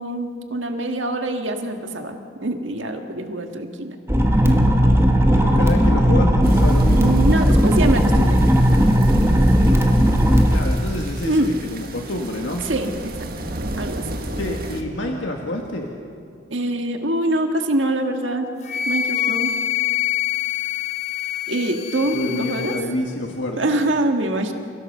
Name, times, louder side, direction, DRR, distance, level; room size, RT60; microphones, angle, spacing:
voice 1, 0.0-4.0 4.4-5.1 6.9-8.4 11.2-11.5 12.7-13.1 13.8-14.0 16.5-18.5 18.8-19.5 21.5-22.7 23.6-24.5, right 1 dB, 90° right, 5 dB, 1.6 m, -24 dB
sound 1, 4.1-10.6, equal, 15° right, 1.7 m, -16 dB
voice 2, 5.3-7.2 10.5-12.6 14.3-15.9 22.1-23.7, left 1 dB, 85° left, 1 dB, 1.8 m, -28 dB
sound 2, 6.4-14.8, right 2 dB, 50° right, 1.7 m, -35 dB
Wind instrument woodwind instrument, 18.6-22.8, left 11 dB, 40° left, 1.0 m, -25 dB
29.0 x 17.0 x 6.7 m, 2.4 s
head